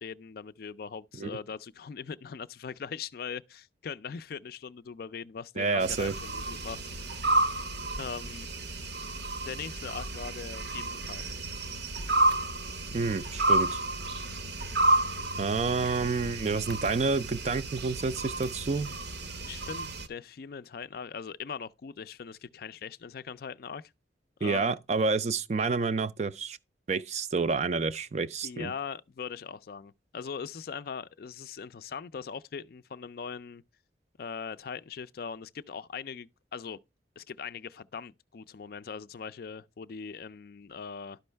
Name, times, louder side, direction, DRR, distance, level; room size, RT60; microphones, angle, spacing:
voice 1, 0.0-7.2 8.0-8.5 9.4-11.3 19.4-23.9 24.4-24.7 28.4-33.6 34.2-36.8 37.2-41.2, left 6 dB, 50° left, 0.4 m, -40 dB
voice 2, 5.6-6.1 12.9-13.8 15.4-18.9 24.4-26.6 26.9-28.7, right 4 dB, 35° right, 0.4 m, -29 dB
sound 1, 5.8-20.1, right 2 dB, 65° right, 0.9 m, -31 dB
12.0 x 5.3 x 3.3 m
head